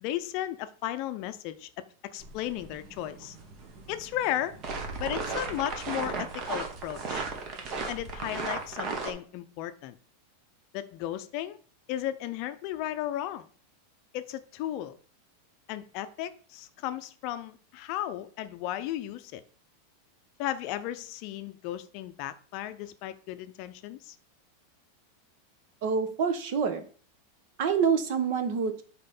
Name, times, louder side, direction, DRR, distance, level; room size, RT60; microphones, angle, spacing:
voice 1, 0.0-1.7 2.0-3.4 3.9-4.6 5.0-7.2 7.9-10.0 10.7-11.6 11.9-13.5 14.1-14.9 15.7-19.4 20.4-24.2, left 12 dB, 45° left, 11 dB, 0.5 m, -35 dB
sound 1, 2.2-9.1, right 4 dB, 35° right, 1.3 m, -36 dB
voice 2, 25.8-26.8 27.6-28.8, right 6 dB, 55° right, 9 dB, 1.1 m, -26 dB
6.7 x 4.2 x 5.3 m, 0.43 s
supercardioid pair, 155°, 0 cm